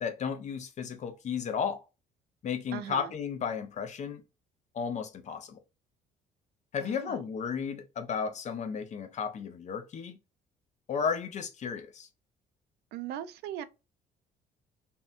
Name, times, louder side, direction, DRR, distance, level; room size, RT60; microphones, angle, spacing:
voice 1, 0.0-1.8 2.4-4.2 4.7-5.6 6.7-10.2 10.9-12.1, left 6 dB, 45° left, 0.6 m, -34 dB
voice 2, 2.7-3.1 6.8-7.2 12.9-13.6, right 10 dB, 75° right, 0.4 m, -39 dB
2.7 x 2.2 x 2.5 m
cardioid pair, 110°, 17 cm